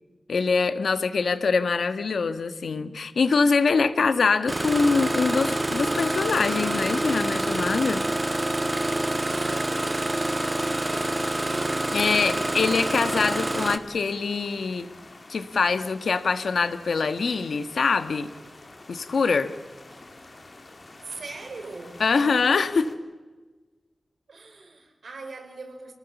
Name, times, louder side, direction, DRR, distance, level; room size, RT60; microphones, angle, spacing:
voice 1, 0.3-8.0 11.9-14.9 15.3-18.3 18.9-19.5 22.0-22.9, left 4 dB, 85° left, 1.6 m, -24 dB
Engine starting, 4.5-13.8, right 1 dB, 20° right, 1.5 m, -27 dB
sound 1, 10.4-22.9, left 2 dB, 45° left, 3.3 m, -48 dB
voice 2, 21.0-22.1 24.3-25.9, right 3 dB, 75° right, 4.9 m, -42 dB
28.5 x 19.0 x 7.2 m
wide cardioid pair, 70°, 0 cm